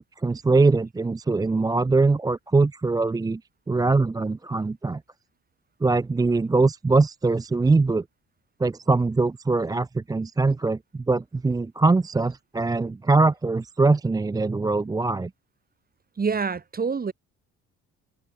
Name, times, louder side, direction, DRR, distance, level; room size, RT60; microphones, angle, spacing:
voice 1, 0.0-3.4 3.7-5.0 5.8-8.0 8.6-15.3, right 3 dB, 15° right, 0.4 m, -22 dB
voice 2, 16.2-17.1, right 5 dB, 30° right, 1.7 m, -26 dB
cardioid pair, 90°, 30 cm